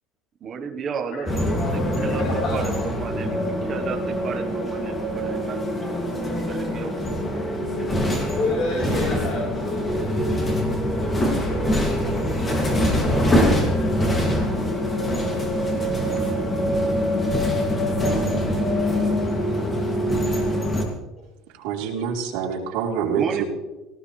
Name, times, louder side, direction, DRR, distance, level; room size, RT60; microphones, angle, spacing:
voice 1, 0.4-2.2 2.5-7.5 8.1-8.4 23.2-23.4, right 6 dB, 25° right, 4 dB, 1.2 m, -33 dB
sound 1, 1.3-20.8, equal, 15° left, 2.5 m, -23 dB
voice 2, 2.1-2.6 8.4-10.0, left 2 dB, 45° left, -3 dB, 4.0 m, -28 dB
voice 3, 21.6-23.4, right 7 dB, 75° right, -1 dB, 3.5 m, -26 dB
18.0 x 15.0 x 3.3 m, 1.1 s
cardioid pair, 175°, 0 cm